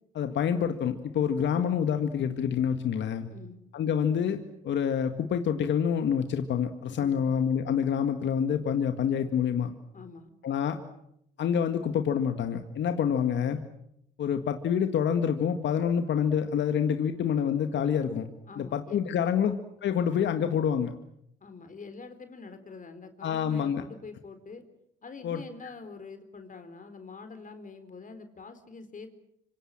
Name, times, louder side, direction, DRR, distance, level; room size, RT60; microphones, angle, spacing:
voice 1, 0.1-3.3 3.7-9.7 10.4-10.8 11.4-13.6 14.2-18.2 18.6-20.9 23.2-23.8 25.2-25.4, left 8 dB, 60° left, 7 dB, 1.9 m, -27 dB
voice 2, 7.0-7.3 9.9-10.3 18.5-19.6 21.4-24.6 25.0-29.2, left 4 dB, 40° left, 8 dB, 4.1 m, -45 dB
26.0 x 25.0 x 7.7 m, 0.77 s
supercardioid pair, 60°, 21 cm